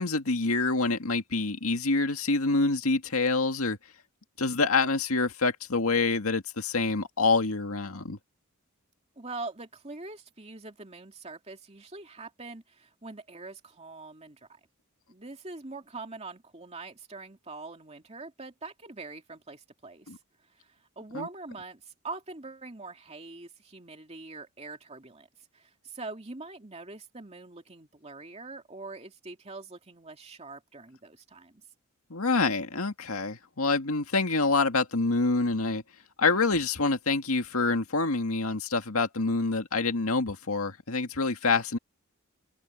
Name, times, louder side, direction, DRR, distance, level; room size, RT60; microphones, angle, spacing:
voice 1, 0.0-3.8 4.4-8.2 20.1-20.2 21.1-21.3 32.1-35.8 36.2-41.8, left 3 dB, 90° left, 2.0 m, -26 dB
voice 2, 9.2-14.6 15.1-20.2 20.5-25.3 25.5-31.6, right 3 dB, 30° right, 2.6 m, -43 dB
head